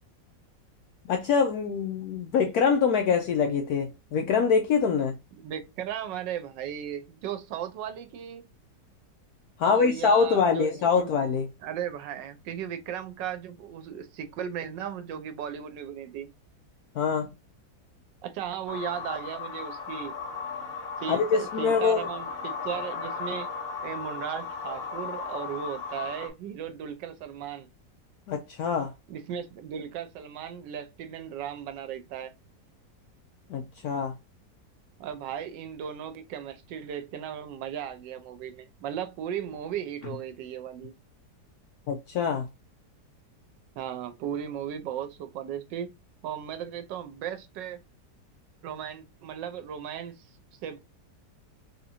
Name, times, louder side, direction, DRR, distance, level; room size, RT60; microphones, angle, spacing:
voice 1, 1.1-5.2 9.6-11.5 16.9-17.3 21.1-22.1 28.3-28.9 33.5-34.2 41.9-42.5, left 6 dB, 70° left, 1.0 m, -24 dB
voice 2, 5.4-8.5 9.6-11.1 11.6-16.3 18.2-20.2 21.0-23.5 23.8-27.7 29.1-32.3 35.0-40.9 43.8-45.9 46.2-47.8 48.6-50.3 50.5-50.8, right 9 dB, 90° right, 1.3 m, -36 dB
sound 1, 18.7-26.3, left 5 dB, 50° left, 0.7 m, -36 dB
3.8 x 2.9 x 2.7 m
omnidirectional pair, 1.9 m